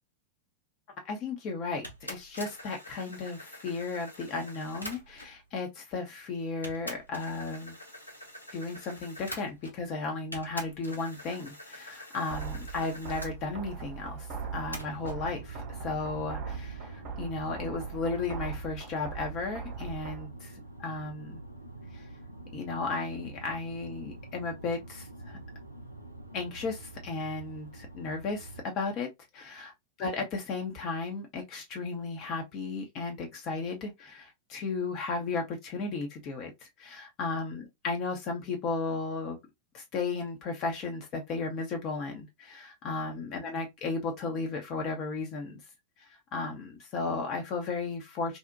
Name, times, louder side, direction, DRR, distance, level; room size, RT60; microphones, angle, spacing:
voice 1, 1.0-7.8 8.5-21.4 21.9-22.0 22.5-25.4 26.3-29.1 29.3-29.7 30.0-39.4 39.7-45.6 46.0-48.4, left 3 dB, 40° left, 0.5 m, -35 dB
sound 1, 1.8-5.4 6.1-6.2 6.6-9.9 10.3-13.3 14.7-15.2, equal, 90° left, 0.6 m, -45 dB
sound 2, 12.3-20.3, right 6 dB, 40° right, 0.5 m, -40 dB
sound 3, 14.3-28.6, right 2 dB, 90° right, 0.4 m, -46 dB
2.5 x 2.1 x 2.4 m
figure-of-eight pair, 90°, 0 cm